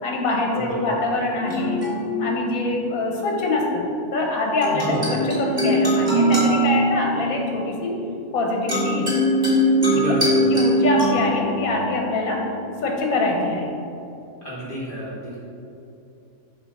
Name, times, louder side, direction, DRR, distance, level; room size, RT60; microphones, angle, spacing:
voice 1, 0.0-1.9 2.2-3.8 4.1-7.9 8.3-9.2 9.9-10.0 10.5-12.5 12.8-13.7, left 2 dB, 75° left, 1 dB, 1.4 m, -24 dB
voice 2, 0.5-0.9 4.7-5.1 9.9-10.4 14.4-15.4, equal, 40° left, -8 dB, 1.7 m, -29 dB
sound 1, 1.4-3.2 4.6-13.1, right 1 dB, 30° right, 1.6 m, -22 dB
7.2 x 3.1 x 5.2 m, 2.8 s
omnidirectional pair, 1.5 m